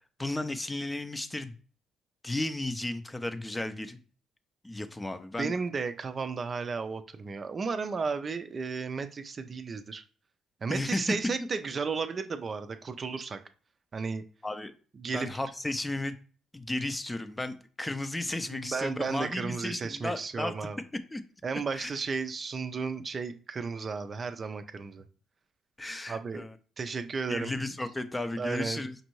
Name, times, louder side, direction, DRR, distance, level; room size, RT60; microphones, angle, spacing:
voice 1, 0.2-1.6 2.2-4.0 4.6-5.5 10.7-11.1 14.4-14.7 15.1-16.1 16.5-20.5 21.1-21.2 21.7-21.9 25.8-26.5 27.3-28.9, left 2 dB, 15° left, 10 dB, 0.5 m, -34 dB
voice 2, 5.4-10.0 10.6-13.4 13.9-14.2 15.0-15.3 18.5-20.8 21.4-25.1 26.1-26.4 26.8-27.5 28.4-28.8, right 4 dB, 40° right, 9 dB, 0.4 m, -33 dB
5.2 x 2.6 x 3.0 m, 0.40 s
supercardioid pair, 70°, 0 cm